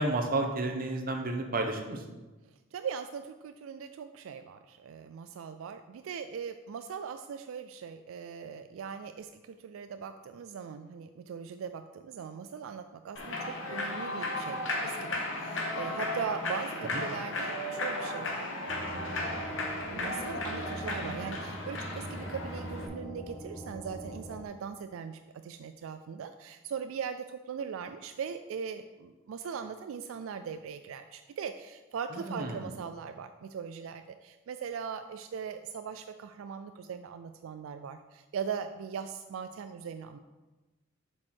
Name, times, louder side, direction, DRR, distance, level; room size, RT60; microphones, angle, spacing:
voice 1, 0.0-2.0 16.8-17.0 32.1-32.7, right 2 dB, 45° right, 3 dB, 0.9 m, -32 dB
voice 2, 2.7-19.5 19.9-40.2, right 6 dB, 80° right, 8 dB, 0.3 m, -40 dB
Human voice / Clapping / Cheering, 13.2-22.9, left 2 dB, 65° left, 1.1 m, -35 dB
sound 1, 18.7-24.4, right 1 dB, 10° left, 0.9 m, -42 dB
7.5 x 4.7 x 4.4 m, 1.2 s
head